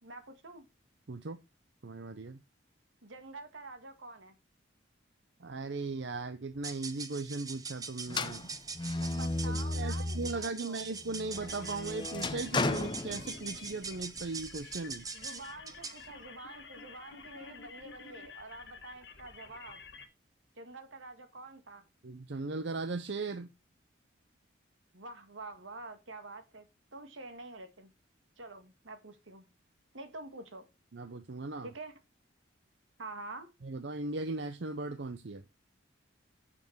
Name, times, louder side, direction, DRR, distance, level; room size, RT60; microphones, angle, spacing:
voice 1, 0.0-0.7 3.0-4.4 9.0-10.8 15.1-19.8 20.6-21.9 24.9-26.7 26.9-27.9 28.4-29.5 29.9-30.7 31.6-31.9 33.0-33.5, right 2 dB, 80° right, 1.8 m, -47 dB
voice 2, 1.1-1.4 1.8-2.4 5.4-8.5 9.5-15.0 22.0-23.5 30.9-31.7 33.6-35.4, right 3 dB, 65° right, 0.7 m, -38 dB
sound 1, 6.5-16.1, right 5 dB, 20° right, 0.8 m, -43 dB
sound 2, 8.1-10.5 10.9-13.8, left 2 dB, 25° left, 0.6 m, -35 dB
sound 3, 11.3-20.1, left 5 dB, 60° left, 1.4 m, -51 dB
8.4 x 7.1 x 4.5 m
head